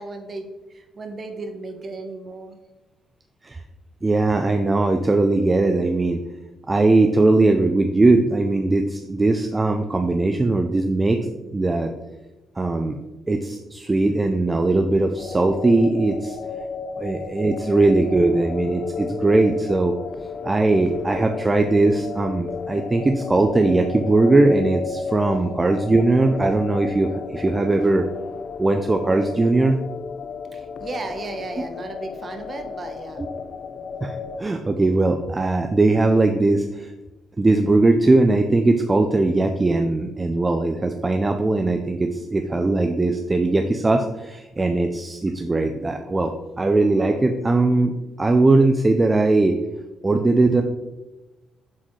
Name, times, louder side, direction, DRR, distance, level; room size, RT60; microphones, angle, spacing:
voice 1, 0.0-2.6 30.5-33.2, right 3 dB, 40° right, 5 dB, 1.0 m, -35 dB
voice 2, 4.0-6.2 6.7-11.2 11.5-11.9 12.6-13.0 13.3-16.4 17.0-19.9 20.4-28.1 28.6-29.8 33.2-33.3 34.0-36.9 37.4-49.6 50.0-50.6, right 2 dB, 20° right, 5 dB, 0.4 m, -20 dB
sound 1, 15.2-34.4, left 5 dB, 55° left, 0.4 m, -33 dB
7.5 x 4.1 x 3.2 m, 1.1 s
cardioid pair, 90°, 0 cm